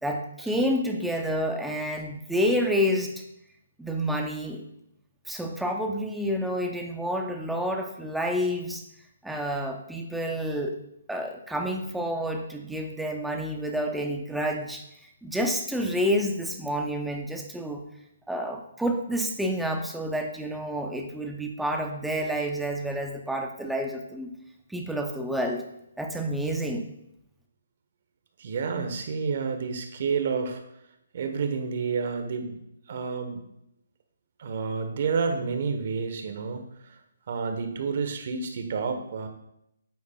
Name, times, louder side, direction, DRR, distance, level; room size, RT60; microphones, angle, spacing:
voice 1, 0.0-3.1 3.8-4.6 5.3-8.8 9.2-10.8 11.1-14.8 15.2-17.8 18.3-24.3 24.7-25.6 26.0-26.9, equal, ahead, 2 dB, 0.7 m, -29 dB
voice 2, 28.4-30.6 31.1-32.6 32.9-33.4 34.4-36.6 37.3-39.3, right 5 dB, 50° right, 6 dB, 1.1 m, -29 dB
8.4 x 8.4 x 2.3 m, 0.79 s
hypercardioid pair, 155°, 0 cm